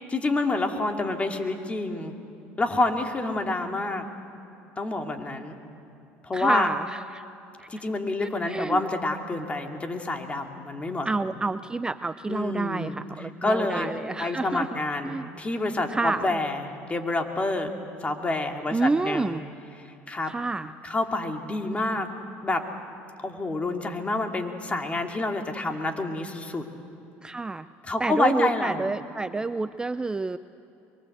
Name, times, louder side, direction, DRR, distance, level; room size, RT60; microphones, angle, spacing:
voice 1, 0.1-2.1 2.6-4.1 4.8-5.6 6.2-6.7 7.7-11.1 12.3-13.0 13.4-13.9 14.2-16.6 16.9-17.7 18.0-19.4 20.1-20.3 20.8-22.1 22.4-22.6 23.2-26.6 27.8-28.9, left 2 dB, 20° left, 4 dB, 2.5 m, -28 dB
voice 2, 6.3-7.3 7.6-7.7 8.2-8.8 11.1-14.8 15.0-15.3 15.9-16.4 18.7-19.4 20.3-20.7 27.2-27.7 28.0-30.4, right 3 dB, 15° right, 13 dB, 0.5 m, -29 dB
23.5 x 23.5 x 7.9 m, 2.8 s
supercardioid pair, 95°, 6 cm